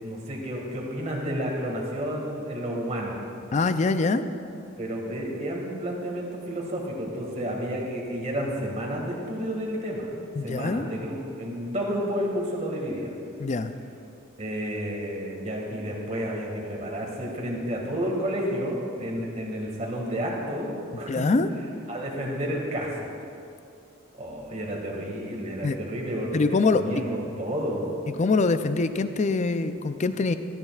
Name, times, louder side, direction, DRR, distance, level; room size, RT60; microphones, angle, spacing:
voice 1, 0.0-3.2 4.8-10.1 10.4-13.1 14.4-21.3 21.9-23.1 24.1-27.8, equal, 35° right, -1 dB, 1.9 m, -31 dB
voice 2, 3.5-4.2 10.4-10.9 13.4-13.7 21.1-21.5 25.6-25.8 26.3-26.8 28.2-30.4, left 3 dB, 35° left, 10 dB, 0.4 m, -24 dB
15.0 x 13.0 x 2.4 m, 2.5 s
head